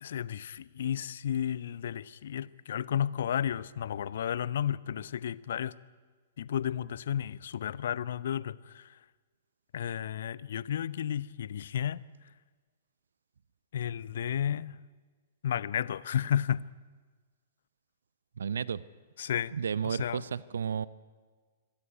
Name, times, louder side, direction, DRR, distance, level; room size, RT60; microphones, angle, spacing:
voice 1, 0.0-5.7 6.4-9.0 9.7-12.0 13.7-14.8 15.4-16.6 19.2-19.5 19.8-20.2, left 9 dB, 55° left, 0.7 m, -32 dB
voice 2, 18.4-18.8 19.5-20.9, right 7 dB, 65° right, 0.7 m, -32 dB
25.5 x 17.0 x 9.5 m
figure-of-eight pair, 110°, 0 cm